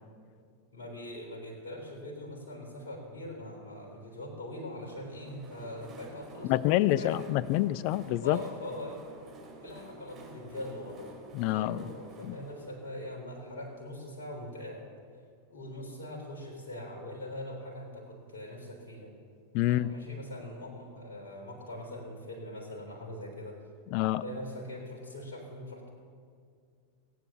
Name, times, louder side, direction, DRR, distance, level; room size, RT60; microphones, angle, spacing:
voice 1, 0.7-7.2 8.2-9.2 9.6-14.9 15.5-19.1 19.6-23.6 24.2-25.9, left 1 dB, 60° left, 0 dB, 3.6 m, -42 dB
Train, 4.8-14.4, right 3 dB, 30° right, 3.5 m, -51 dB
voice 2, 6.4-8.4 11.3-11.9 12.2-12.4 19.5-19.9 23.9-24.2, left 15 dB, 45° left, 20 dB, 0.4 m, -27 dB
19.5 x 9.1 x 7.1 m, 2.2 s
figure-of-eight pair, 90°, 0 cm